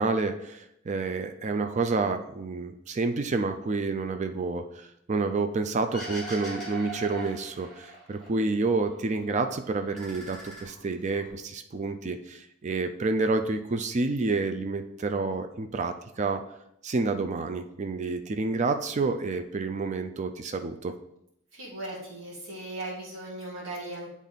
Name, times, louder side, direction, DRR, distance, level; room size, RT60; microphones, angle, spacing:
voice 1, 0.0-16.4 16.8-21.0, right 3 dB, 35° right, 7 dB, 0.4 m, -29 dB
sound 1, 5.9-8.3 8.6-9.4 9.8-11.3, right 2 dB, ahead, 2.3 m, -41 dB
voice 2, 21.5-24.1, right 1 dB, 80° right, -6 dB, 1.7 m, -38 dB
8.5 x 3.6 x 4.0 m, 0.77 s
head